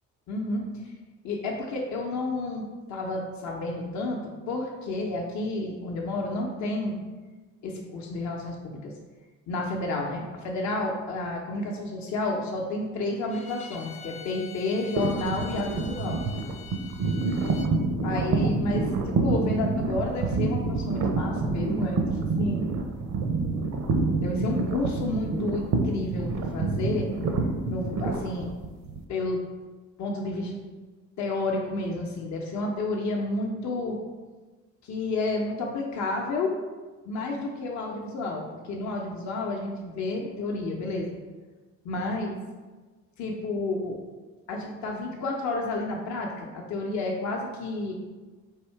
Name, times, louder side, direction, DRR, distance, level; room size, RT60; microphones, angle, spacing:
voice 1, 0.3-0.9 1.2-4.2 4.5-7.0 7.6-8.9 9.5-16.2 18.0-22.0 22.4-22.7 24.2-27.1 27.7-28.5 29.1-29.4 30.0-30.6 31.2-34.0 34.8-36.5 37.1-38.4 38.7-41.1 41.9-42.3 43.2-44.0 44.5-47.9, left 2 dB, 70° left, 0 dB, 0.7 m, -30 dB
Bowed string instrument, 13.3-17.7, left 7 dB, 25° left, 0.4 m, -45 dB
sound 1, 15.0-29.0, right 3 dB, 65° right, 0.6 m, -27 dB
3.6 x 2.7 x 4.4 m, 1.3 s
cardioid pair, 90°, 30 cm